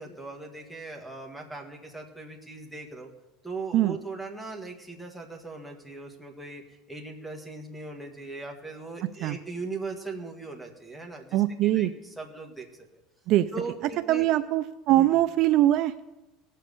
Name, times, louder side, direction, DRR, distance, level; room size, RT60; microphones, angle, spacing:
voice 1, 0.0-3.1 3.4-12.7 13.5-14.3 14.9-15.1, right 3 dB, ahead, 4 dB, 1.7 m, -39 dB
voice 2, 11.3-11.9 13.3-13.5 14.1-15.9, right 14 dB, 45° right, 11 dB, 0.4 m, -22 dB
18.0 x 7.5 x 6.7 m, 1.0 s
cardioid pair, 160°, 0 cm